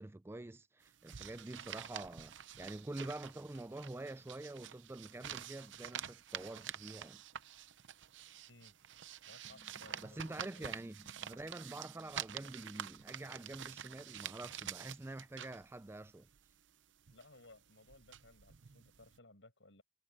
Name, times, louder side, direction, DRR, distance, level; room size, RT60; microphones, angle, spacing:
voice 1, 0.0-7.2 10.0-16.3, right 2 dB, 15° right, 0.3 m, -47 dB
sound 1, 0.8-19.2, right 9 dB, 85° right, 0.7 m, -48 dB
voice 2, 9.2-10.7 17.1-19.8, left 2 dB, 80° left, 6.8 m, -60 dB
sound 2, 9.4-15.5, equal, 5° left, 5.5 m, -65 dB
head